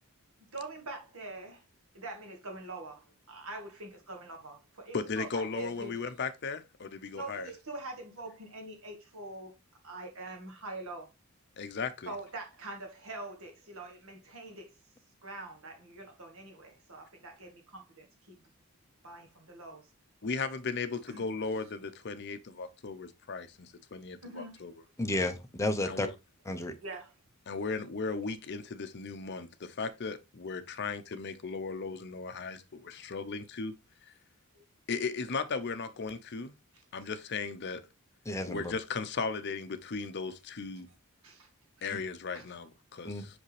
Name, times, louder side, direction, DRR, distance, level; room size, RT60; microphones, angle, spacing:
voice 1, 0.5-1.6 1.9-5.9 7.1-9.6 9.8-11.1 12.1-14.7 15.2-18.4 19.0-19.9 21.1-21.2 24.2-24.7 26.8-27.1 30.7-30.8 34.6-34.7 36.7-36.8 41.2-41.5 41.8-42.0 42.3-42.4, right 2 dB, 65° right, 1.7 m, -44 dB
voice 2, 4.9-7.5 11.6-12.1 20.2-24.7 25.8-26.1 27.5-33.7 34.9-36.5 36.9-37.8 38.5-40.9 41.8-43.3, left 4 dB, 50° left, 0.7 m, -36 dB
voice 3, 25.0-26.1 26.4-26.8 38.2-38.7 41.9-42.0 43.0-43.2, left 1 dB, 15° left, 0.7 m, -32 dB
6.1 x 5.1 x 3.2 m
head